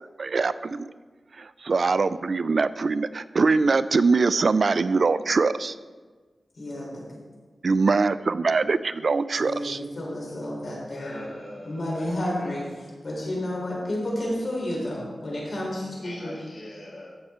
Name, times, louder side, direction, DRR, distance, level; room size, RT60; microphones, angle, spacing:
voice 1, 0.2-0.9 1.3-5.8 7.6-9.8, right 4 dB, 55° right, 15 dB, 0.3 m, -23 dB
voice 2, 6.5-7.0 9.4-11.2 11.7-12.6 13.0-16.6, left 1 dB, 60° left, -3 dB, 3.8 m, -31 dB
voice 3, 11.0-12.5 16.2-17.1, left 1 dB, 75° left, -5 dB, 3.0 m, -42 dB
15.0 x 6.5 x 4.3 m, 1.4 s
wide cardioid pair, 115°, 0 cm